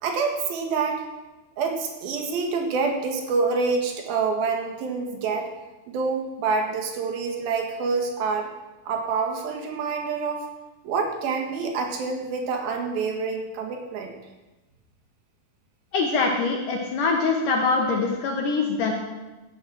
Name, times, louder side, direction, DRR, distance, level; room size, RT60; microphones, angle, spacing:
voice 1, 0.0-1.0 1.6-5.5 5.9-8.5 8.8-10.4 10.8-14.2, right 4 dB, 75° right, 3 dB, 3.5 m, -27 dB
voice 2, 15.9-18.9, left 4 dB, 70° left, 1 dB, 2.5 m, -23 dB
16.0 x 7.5 x 6.2 m, 1.1 s
omnidirectional pair, 4.3 m